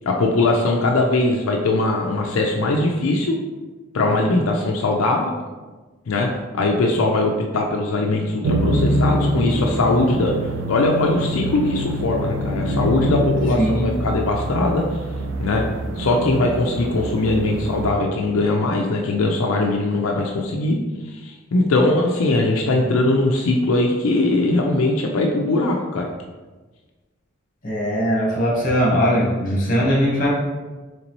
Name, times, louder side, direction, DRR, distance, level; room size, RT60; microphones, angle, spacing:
voice 1, 0.0-3.4 3.9-5.3 6.1-14.8 15.4-15.7 16.0-20.8 21.1-26.1, left 2 dB, 85° left, 1 dB, 0.4 m, -20 dB
sound 1, 8.4-17.9, right 1 dB, 65° right, 0.4 m, -25 dB
voice 2, 13.6-13.9 27.6-30.3, equal, 40° left, -4 dB, 1.1 m, -20 dB
4.0 x 3.2 x 3.0 m, 1.3 s
head